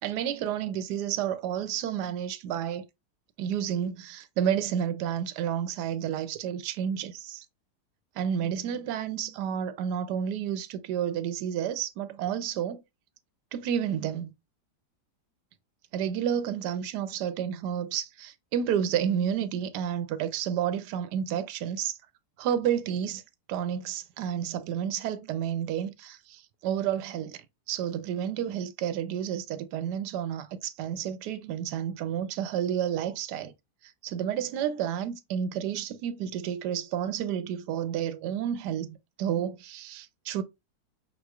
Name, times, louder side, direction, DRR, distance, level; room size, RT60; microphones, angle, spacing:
voice 1, 0.0-2.9 3.4-7.5 8.2-12.8 13.5-14.3 15.9-22.0 22.4-23.2 23.5-27.4 27.7-33.5 33.8-40.4, right 9 dB, 85° right, 1.2 m, -30 dB
5.6 x 3.1 x 2.3 m
omnidirectional pair, 1.7 m